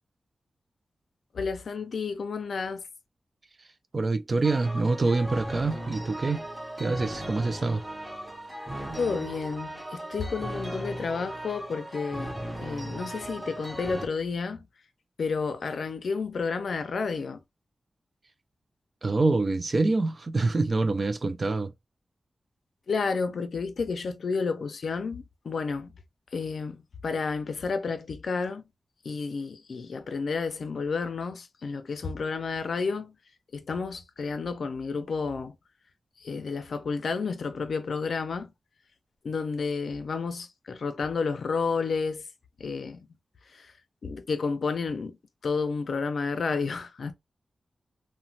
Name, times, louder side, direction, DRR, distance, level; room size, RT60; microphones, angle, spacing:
voice 1, 1.3-2.8 9.0-14.7 15.2-17.4 22.9-25.9 26.3-28.6 29.0-33.1 33.5-35.5 36.2-38.5 39.2-42.2 42.6-43.0 43.6-43.7 44.0-45.2 45.4-47.1, left 4 dB, 70° left, 0.4 m, -31 dB
voice 2, 3.9-6.5 6.8-7.8 19.0-21.7, right 3 dB, 40° right, 0.3 m, -26 dB
sound 1, 4.4-14.1, right 1 dB, 5° right, 0.7 m, -37 dB
2.9 x 2.1 x 2.7 m
wide cardioid pair, 110°, 0 cm